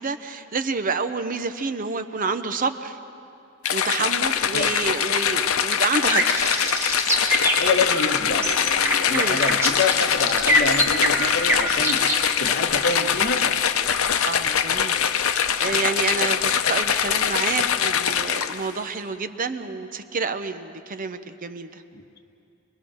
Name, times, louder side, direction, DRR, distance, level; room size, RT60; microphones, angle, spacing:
voice 1, 0.0-3.0 3.7-6.5 9.1-9.4 14.3-15.0 15.3-21.8, right 4 dB, 40° right, 10 dB, 0.7 m, -28 dB
sound 1, 3.6-18.8, left 8 dB, 90° left, 0.7 m, -23 dB
sound 2, 5.7-12.2, equal, 15° right, 1.8 m, -23 dB
voice 2, 7.6-12.0 12.4-13.6 21.9-22.2, left 3 dB, 50° left, 4 dB, 1.3 m, -27 dB
26.0 x 20.0 x 6.3 m, 2.6 s
head